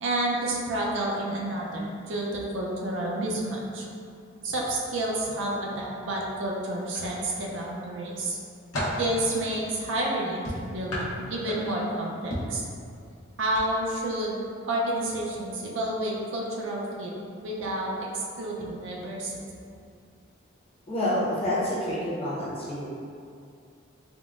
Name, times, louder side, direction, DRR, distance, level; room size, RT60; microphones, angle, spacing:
voice 1, 0.0-3.9 4.4-8.4 8.9-12.7 13.4-17.1 17.4-19.4, right 1 dB, 65° right, -3 dB, 0.4 m, -30 dB
sound 1, 6.9-7.7 8.2-9.1 10.4-11.9 12.3-12.6 13.5-13.7 14.0-14.2, equal, 85° left, 0.7 m, -33 dB
voice 2, 20.9-22.9, left 1 dB, 30° left, -8 dB, 0.6 m, -28 dB
3.5 x 2.0 x 2.4 m, 2.4 s
head